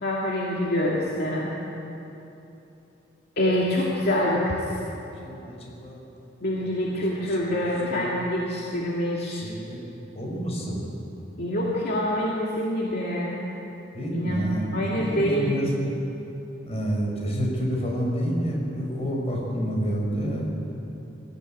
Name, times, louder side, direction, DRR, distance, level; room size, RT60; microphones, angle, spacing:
voice 1, 0.0-1.5 3.4-4.8 6.4-9.4 11.4-13.4 14.1-14.4 14.7-15.6, left 1 dB, 55° left, -4 dB, 2.5 m, -26 dB
voice 2, 5.2-6.0 6.6-7.0 7.3-8.0 9.3-9.8 10.1-10.8 13.9-15.7 16.7-20.8, equal, 35° left, -2 dB, 5.2 m, -29 dB
21.5 x 15.5 x 9.1 m, 2.9 s
head